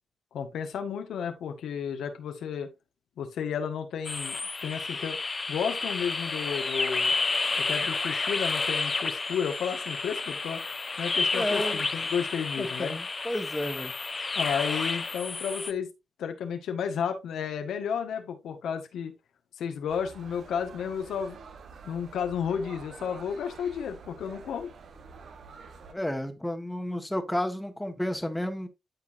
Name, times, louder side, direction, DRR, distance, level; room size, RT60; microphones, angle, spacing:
voice 1, 0.3-2.7 3.2-4.3 4.6-5.2 5.5-7.1 7.6-13.0 14.3-15.9 16.2-19.1 19.6-21.4 21.8-24.7, left 7 dB, 90° left, 1.5 m, -32 dB
sound 1, 4.0-15.7, left 3 dB, 35° left, 0.8 m, -30 dB
voice 2, 11.3-11.8 12.6-13.9 25.9-28.7, left 1 dB, 5° left, 1.5 m, -31 dB
sound 2, 19.9-25.9, right 5 dB, 65° right, 1.1 m, -48 dB
12.5 x 4.8 x 2.6 m
cardioid pair, 95°, 0 cm